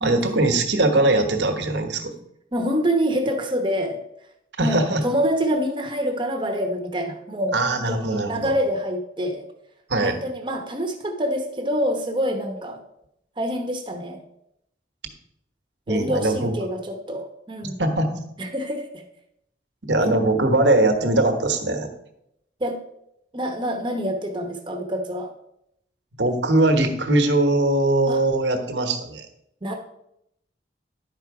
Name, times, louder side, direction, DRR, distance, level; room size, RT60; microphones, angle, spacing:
voice 1, 0.0-2.1 4.6-5.0 7.5-8.5 9.9-10.2 15.9-16.5 17.6-18.2 19.8-21.9 26.2-29.3, right 2 dB, 80° right, 6 dB, 1.2 m, -21 dB
voice 2, 2.5-4.0 4.6-9.4 10.0-12.8 13.4-14.2 15.9-17.8 18.4-19.0 20.0-20.1 22.6-22.8 23.3-25.3 28.1-28.2 29.6-29.7, equal, 25° right, 4 dB, 0.9 m, -26 dB
11.0 x 4.6 x 4.8 m, 0.79 s
head